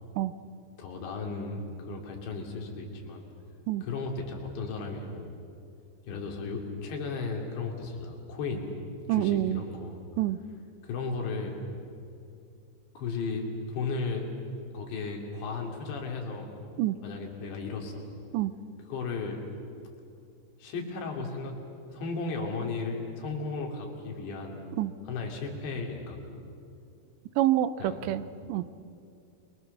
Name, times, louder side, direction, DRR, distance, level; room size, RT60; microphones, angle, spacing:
voice 1, 0.8-3.2 3.8-5.3 6.0-8.7 9.1-10.0 10.8-11.6 12.9-14.3 14.7-16.5 17.0-18.1 18.9-19.4 20.6-21.5 21.9-24.6 25.0-26.4 27.8-28.1, left 4 dB, 90° left, 1 dB, 5.1 m, -35 dB
voice 2, 9.1-9.6 10.2-10.4 16.8-17.0 18.3-18.5 24.8-24.9 27.4-28.6, right 14 dB, 85° right, 14 dB, 3.0 m, -27 dB
29.0 x 22.5 x 6.8 m, 2.5 s
omnidirectional pair, 4.9 m